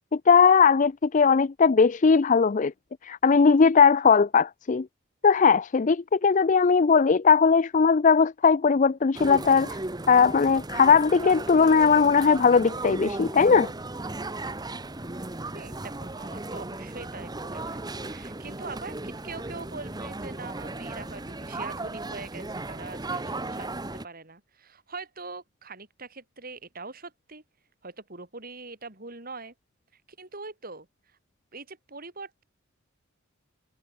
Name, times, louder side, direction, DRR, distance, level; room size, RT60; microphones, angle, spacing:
voice 1, 0.1-2.7 3.0-4.9 5.2-9.7 10.1-13.7, left 5 dB, 40° left, 0.4 m, -19 dB
sound 1, 9.1-24.1, right 2 dB, 20° right, 1.2 m, -36 dB
voice 2, 15.5-27.4 27.8-29.5 30.2-30.9 31.5-32.4, right 3 dB, 45° right, 4.9 m, -42 dB
head